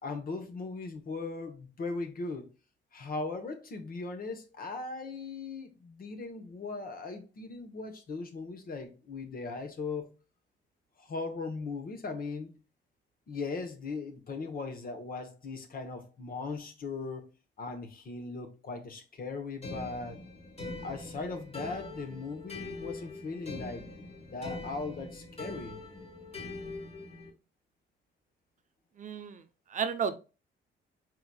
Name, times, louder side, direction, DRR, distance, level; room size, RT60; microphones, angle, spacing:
voice 1, 0.0-2.5 2.9-10.1 11.0-12.6 13.3-17.2 17.6-20.2 20.8-23.9 24.2-25.8, left 3 dB, 45° left, 1.0 m, -38 dB
sound 1, 19.6-27.3, left 2 dB, 30° left, 1.3 m, -43 dB
voice 2, 29.0-29.4 29.7-30.2, right 6 dB, 40° right, 0.6 m, -32 dB
4.6 x 3.8 x 2.2 m
cardioid pair, 90°, 20 cm